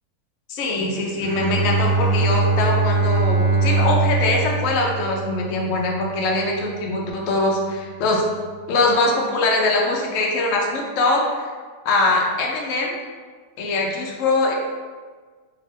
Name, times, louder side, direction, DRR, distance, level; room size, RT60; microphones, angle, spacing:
voice 1, 0.5-8.2 8.7-11.5 11.8-12.9 13.6-14.5, left 2 dB, 65° left, -1 dB, 0.8 m, -22 dB
Bowed string instrument, 1.2-6.5, right 3 dB, 85° right, 1.2 m, -22 dB
3.3 x 2.8 x 3.6 m, 1.5 s
omnidirectional pair, 1.8 m